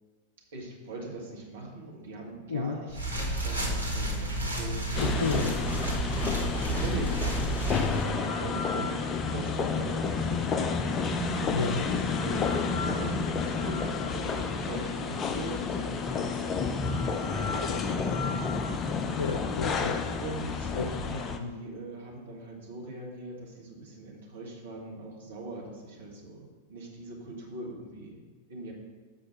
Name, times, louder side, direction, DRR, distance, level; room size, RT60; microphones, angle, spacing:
voice 1, 0.5-5.0 5.4-6.2 6.5-11.9 12.2-12.6 13.0-18.4 20.2-26.4 26.7-28.2 28.5-28.7, right 2 dB, 60° right, -1 dB, 1.7 m, -41 dB
sound 1, 2.9-8.1, right 1 dB, 85° right, 1.4 m, -31 dB
voice 2, 5.0-5.5 11.5-11.9 17.7-17.8 19.2-20.0 20.8-20.9 21.4-21.6, left 4 dB, 70° left, 5 dB, 0.4 m, -31 dB
sound 2, 5.0-21.4, left 4 dB, 25° left, 0.6 m, -30 dB
6.5 x 4.8 x 6.0 m, 1.4 s
figure-of-eight pair, 90°, 0 cm